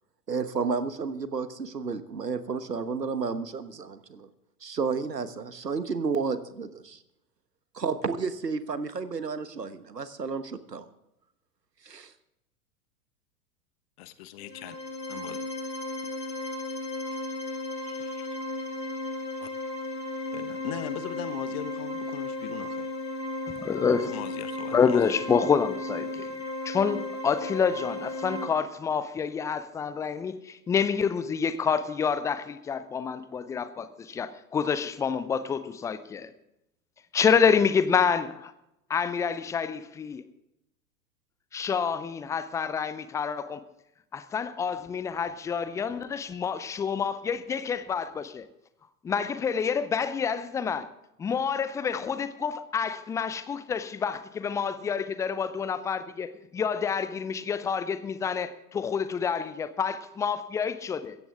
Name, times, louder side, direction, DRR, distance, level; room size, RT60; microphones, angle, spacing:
voice 1, 0.3-4.3 4.6-7.0 7.7-10.8 11.8-12.1, right 5 dB, 80° right, 1.3 m, -31 dB
voice 2, 14.0-14.8 15.1-15.4 17.8-18.3 19.4-19.5 20.3-22.9 24.0-25.0, left 12 dB, 40° left, 1.1 m, -39 dB
sound 1, 14.4-28.5, left 2 dB, 80° left, 3.0 m, -35 dB
voice 3, 23.6-24.1 24.7-26.3 26.6-36.3 37.1-38.5 38.9-40.2 41.5-43.6 44.1-48.5 49.0-50.9 51.2-61.2, left 6 dB, 5° left, 0.5 m, -28 dB
16.5 x 15.0 x 3.6 m
figure-of-eight pair, 95°, 48 cm